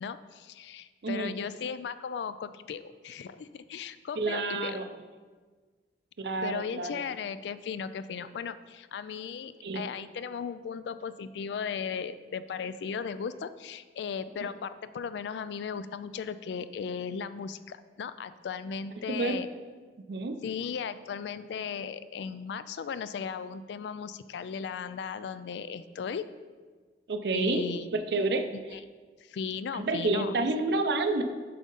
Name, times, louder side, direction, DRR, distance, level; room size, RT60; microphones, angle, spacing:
voice 1, 0.0-4.8 6.4-19.5 20.4-26.3 27.3-27.9 28.7-28.8 29.2-30.4, left 6 dB, 70° left, 13 dB, 0.3 m, -36 dB
voice 2, 1.0-1.4 4.2-4.9 6.2-7.0 9.6-9.9 19.1-19.4 20.1-20.3 27.1-27.6 27.9-28.4 29.7-31.2, right 3 dB, 65° right, 8 dB, 0.5 m, -29 dB
7.7 x 3.7 x 5.4 m, 1.4 s
head